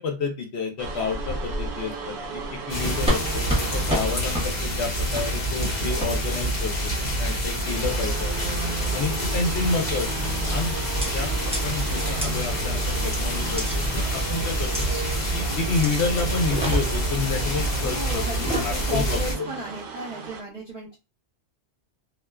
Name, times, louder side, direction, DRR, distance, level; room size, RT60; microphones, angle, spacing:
voice 1, 0.0-6.9 7.2-8.3 8.9-10.1 10.5-10.7 11.0-11.3 11.6-14.9 15.3-19.2, left 4 dB, 75° left, 2 dB, 1.0 m, -29 dB
sound 1, 0.8-20.4, right 4 dB, 65° right, 0.7 m, -36 dB
sound 2, 2.7-19.3, right 1 dB, 40° left, 1.0 m, -27 dB
sound 3, 3.1-3.2 3.5-3.6 3.9-4.0 4.3-4.5 5.1-5.3 6.0-6.1 7.1-7.4 8.0-8.3 8.8-9.1 9.9-10.2 11.0-11.1 11.5-11.6 12.2-12.3 13.6-13.8 14.7-14.9 15.8-16.0 16.4-17.1 18.3-18.7, right 1 dB, 5° right, 0.6 m, -28 dB
voice 2, 17.8-21.0, equal, 40° right, -7 dB, 1.0 m, -34 dB
2.4 x 2.2 x 2.3 m, 0.29 s
omnidirectional pair, 1.1 m